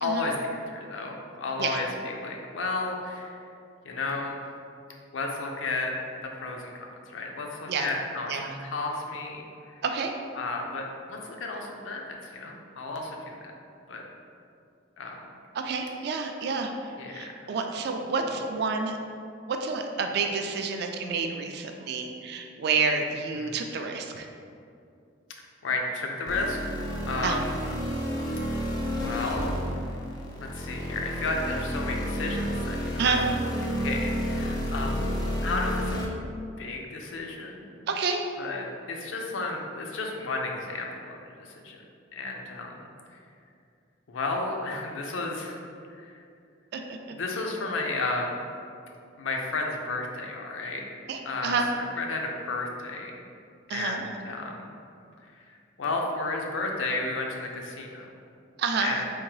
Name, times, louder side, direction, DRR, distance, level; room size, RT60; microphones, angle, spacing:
voice 1, 0.0-3.3 3.8-4.4 5.1-5.9 6.2-9.5 10.4-12.0 12.3-13.3 13.9-14.0 15.0-15.2 17.0-17.2 23.4-23.6 25.6-26.7 27.0-27.6 28.8-29.5 30.4-33.2 33.8-36.0 36.6-37.7 38.4-41.8 42.1-42.9 44.1-45.6 46.0-46.1 47.2-48.3 49.2-50.8 51.2-53.2 53.7-54.6 55.5-58.0 58.8-59.0, left 3 dB, 80° left, 1 dB, 0.5 m, -32 dB
voice 2, 9.8-10.1 15.5-19.0 19.5-24.3 27.2-27.4 33.0-33.3 37.9-38.3 46.7-47.1 51.1-51.7 53.7-54.0 58.6-59.0, right 4 dB, 55° right, 4 dB, 0.3 m, -29 dB
sound 1, 26.3-36.1, equal, 20° left, 0.4 m, -31 dB
3.5 x 2.9 x 3.1 m, 2.4 s
head